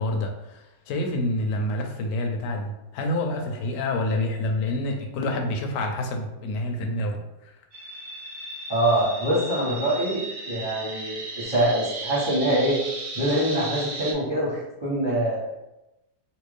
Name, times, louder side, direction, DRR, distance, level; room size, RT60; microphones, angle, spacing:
voice 1, 0.0-7.2, left 1 dB, 75° left, 3 dB, 1.1 m, -27 dB
sound 1, 7.7-14.1, right 2 dB, 70° right, 1.3 m, -35 dB
voice 2, 8.7-12.8 13.1-15.5, right 1 dB, 25° right, -9 dB, 0.6 m, -24 dB
3.0 x 2.5 x 3.2 m, 0.94 s
omnidirectional pair, 2.0 m